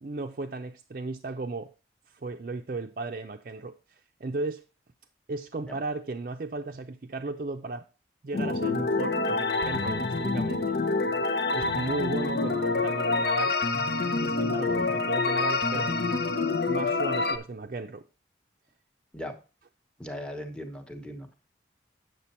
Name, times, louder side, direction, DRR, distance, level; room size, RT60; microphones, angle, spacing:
voice 1, 0.0-1.7 2.1-4.6 5.3-7.9 8.2-10.8 11.5-13.6 14.2-16.0 16.6-18.0, right 3 dB, 50° right, 0.5 m, -35 dB
sound 1, 8.3-17.4, left 3 dB, 60° left, 0.8 m, -27 dB
voice 2, 20.0-21.3, equal, 5° left, 1.0 m, -39 dB
8.4 x 6.7 x 4.3 m
head